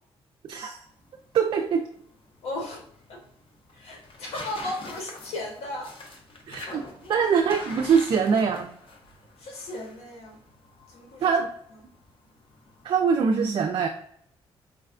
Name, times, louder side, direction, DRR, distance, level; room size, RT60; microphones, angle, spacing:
voice 1, 0.4-0.8 1.3-1.9 6.5-6.8 7.1-8.7 11.2-11.5 12.8-13.9, right 6 dB, 50° right, 3 dB, 0.4 m, -23 dB
sound 1, 0.8-13.1, left 2 dB, 55° left, 0.8 m, -45 dB
voice 2, 2.4-2.8 3.1-3.2 3.7-6.0 6.7-7.3 9.4-10.4 10.9-11.3, left 1 dB, 80° left, 0 dB, 1.1 m, -36 dB
4.7 x 2.2 x 2.5 m, 0.68 s
cardioid pair, 85°, 11 cm